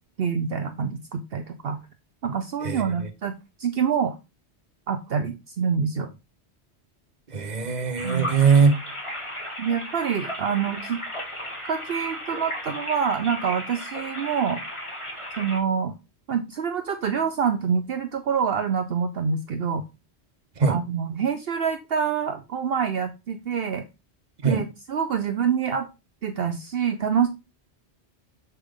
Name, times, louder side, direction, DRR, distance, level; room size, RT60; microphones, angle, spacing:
voice 1, 0.2-1.8 2.2-3.3 3.6-4.2 4.9-6.1 8.0-8.3 9.6-11.0 11.7-14.6 15.4-15.9 16.3-19.8 20.7-23.8 24.4-25.9 26.2-27.3, right 7 dB, 65° right, 7 dB, 0.9 m, -26 dB
voice 2, 7.3-8.8 20.6-20.8 24.4-24.6, right 5 dB, 40° right, 9 dB, 1.2 m, -20 dB
sound 1, 8.0-15.6, equal, 25° left, 1.9 m, -35 dB
7.2 x 7.0 x 3.7 m, 0.27 s
omnidirectional pair, 1.1 m